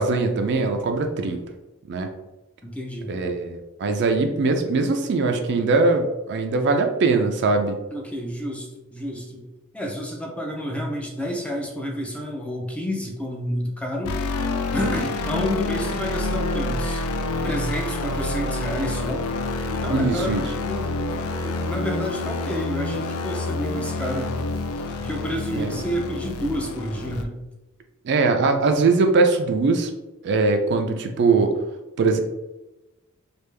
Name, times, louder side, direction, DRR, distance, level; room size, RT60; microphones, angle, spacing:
voice 1, 0.0-1.4 1.9-2.1 3.1-7.8 19.9-20.5 25.5-25.7 28.0-29.9 30.2-31.5 32.0-32.2, right 3 dB, 55° right, 5 dB, 0.4 m, -21 dB
voice 2, 2.6-3.1 7.9-9.5 9.7-17.0 17.4-19.3 19.7-20.9 21.2-24.3 25.0-27.4, equal, 5° left, 0 dB, 0.5 m, -30 dB
sound 1, 14.0-27.2, left 2 dB, 70° left, 0.4 m, -27 dB
3.4 x 2.4 x 3.2 m, 1.0 s
head